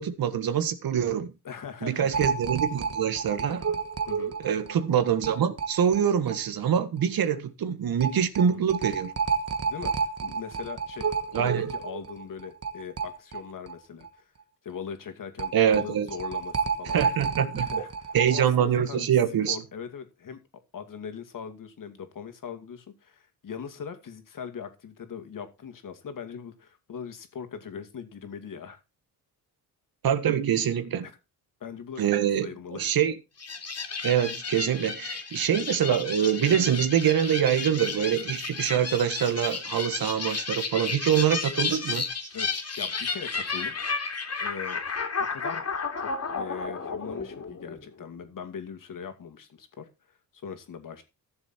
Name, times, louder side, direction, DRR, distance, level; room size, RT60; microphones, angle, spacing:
voice 1, 0.0-1.3 1.8-3.6 4.4-9.1 11.3-11.7 15.5-16.1 16.9-17.8 18.1-19.6 30.0-31.1 32.0-33.1 34.0-42.0, right 9 dB, 65° right, 1.6 m, -25 dB
voice 2, 1.4-2.2 4.1-4.3 8.5-8.6 9.6-14.3 14.6-17.0 17.5-19.2 19.5-20.4 20.7-28.8 31.0-31.2 31.6-32.0 32.4-32.9 42.3-43.7 44.4-44.8 45.2-45.6 45.9-49.9 50.3-51.0, left 7 dB, 55° left, 2.6 m, -40 dB
sound 1, 2.1-6.4 6.7-6.8 7.0-7.1 8.0-13.8 14.0-14.1 15.4-18.4, right 5 dB, 40° right, 1.4 m, -30 dB
sound 2, 33.4-48.0, left 4 dB, 40° left, 3.0 m, -32 dB
14.5 x 7.1 x 4.4 m
cardioid pair, 95°, 38 cm